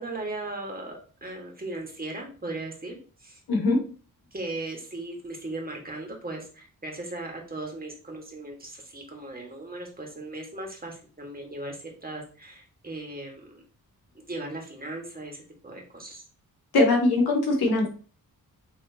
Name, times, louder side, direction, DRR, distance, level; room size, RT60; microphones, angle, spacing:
voice 1, 0.0-3.4 4.3-13.6 14.1-16.2, right 2 dB, 25° right, 0 dB, 1.4 m, -37 dB
voice 2, 3.5-3.8 16.7-17.9, left 2 dB, 80° left, 1 dB, 1.4 m, -21 dB
6.8 x 2.8 x 2.7 m, 0.39 s
wide cardioid pair, 90°, 36 cm